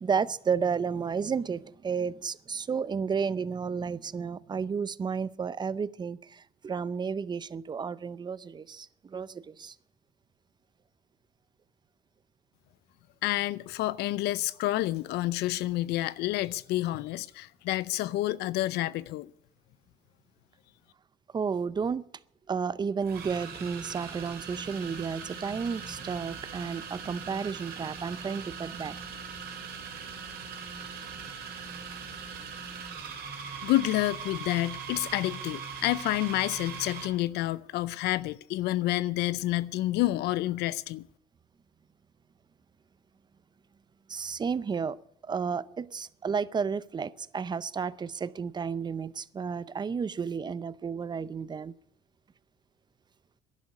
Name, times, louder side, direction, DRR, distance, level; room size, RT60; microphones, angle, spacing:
voice 1, 0.0-9.8 21.3-22.1 22.5-29.0 30.8-30.9 44.1-51.7, right 6 dB, 25° right, 0.6 m, -32 dB
voice 2, 13.2-19.3 33.6-41.1, left 16 dB, 80° left, 0.5 m, -29 dB
sound 1, 21.8-21.9 23.0-37.2, right 6 dB, 70° right, 3.9 m, -40 dB
11.5 x 10.5 x 9.5 m
cardioid pair, 110°, 17 cm